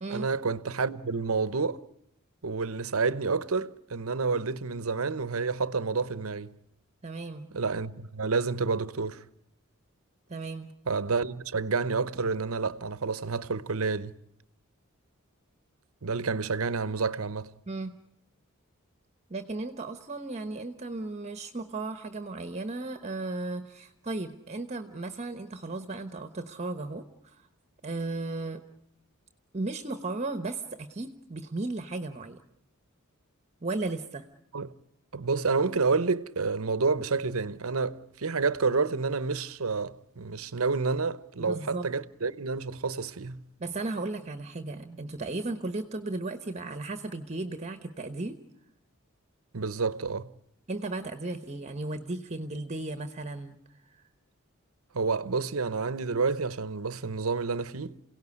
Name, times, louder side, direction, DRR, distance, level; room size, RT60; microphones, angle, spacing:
voice 1, 0.1-1.8 2.4-6.5 7.5-9.2 10.9-14.1 16.0-17.5 34.5-34.7 35.1-43.4 49.5-50.3 54.9-58.1, right 4 dB, 75° right, 0.9 m, -29 dB
voice 2, 7.0-7.5 10.3-10.7 17.7-17.9 19.3-27.4 27.8-28.6 29.5-32.4 33.6-34.3 41.4-41.9 43.6-48.3 50.7-53.6 53.9-54.0, right 2 dB, 30° right, 1.1 m, -35 dB
28.5 x 17.5 x 9.7 m
head